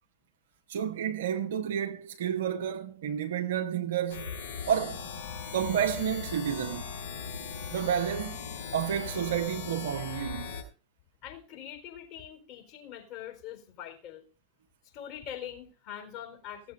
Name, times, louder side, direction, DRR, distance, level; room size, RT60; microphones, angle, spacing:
voice 1, 0.7-4.4 4.7-5.0 5.5-6.9 7.7-8.4 8.7-10.6, right 9 dB, 60° right, 1.0 m, -30 dB
sound 1, 4.1-10.6, left 6 dB, 60° left, 4.3 m, -39 dB
voice 2, 11.2-14.2 14.9-16.7, left 10 dB, 40° left, 4.3 m, -43 dB
16.5 x 7.8 x 5.5 m
figure-of-eight pair, 90°, 0 cm